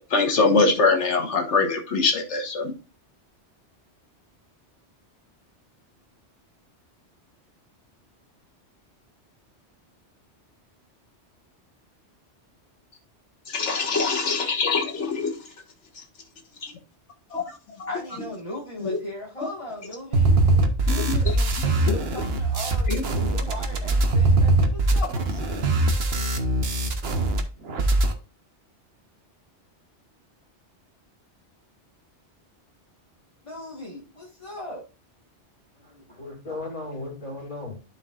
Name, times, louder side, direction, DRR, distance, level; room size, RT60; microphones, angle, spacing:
voice 1, 0.1-2.7 13.5-15.4 16.6-16.7 17.3-17.4 17.8-17.9 18.8-19.0 20.9-21.4 21.8-22.0 22.9-23.4, left 4 dB, 80° left, 1.5 m, -23 dB
voice 2, 17.9-20.3 20.9-25.6 33.4-34.8, left 1 dB, 30° left, 1.6 m, -38 dB
sound 1, 20.1-27.4 27.7-28.1, right 2 dB, 60° right, 1.2 m, -22 dB
voice 3, 35.8-37.8, left 2 dB, 45° left, 2.9 m, -36 dB
11.5 x 4.8 x 2.4 m
omnidirectional pair, 1.2 m